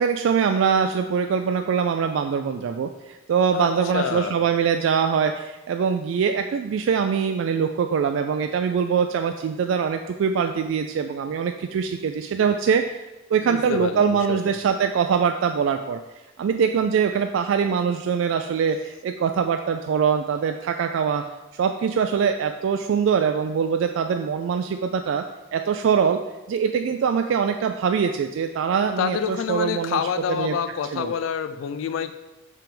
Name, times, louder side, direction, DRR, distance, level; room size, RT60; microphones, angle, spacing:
voice 1, 0.0-12.9 13.3-16.0 16.4-21.2 21.5-25.2 25.5-26.2 26.5-30.0 30.3-30.6 30.9-31.1, right 6 dB, 85° right, 6 dB, 0.3 m, -23 dB
voice 2, 3.5-4.4 13.5-14.5 29.0-32.1, left 7 dB, 85° left, 10 dB, 0.3 m, -27 dB
5.8 x 3.4 x 5.2 m, 1.0 s
head